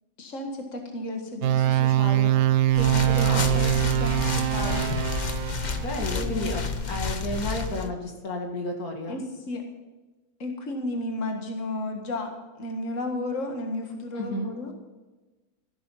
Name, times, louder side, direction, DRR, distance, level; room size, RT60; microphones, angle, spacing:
voice 1, 0.2-2.3 2.7-4.9 6.1-6.6 9.1-9.6 10.4-12.3 12.6-14.7, left 1 dB, 60° left, 3 dB, 2.1 m, -33 dB
sound 1, 1.4-5.9, right 13 dB, 85° right, 1.1 m, -23 dB
sound 2, 2.7-7.9, left 4 dB, 35° left, 0.9 m, -30 dB
voice 2, 3.2-3.7 5.8-9.2 14.1-14.5, left 1 dB, 90° left, 2 dB, 2.7 m, -32 dB
15.0 x 12.0 x 5.7 m, 1.2 s
omnidirectional pair, 1.5 m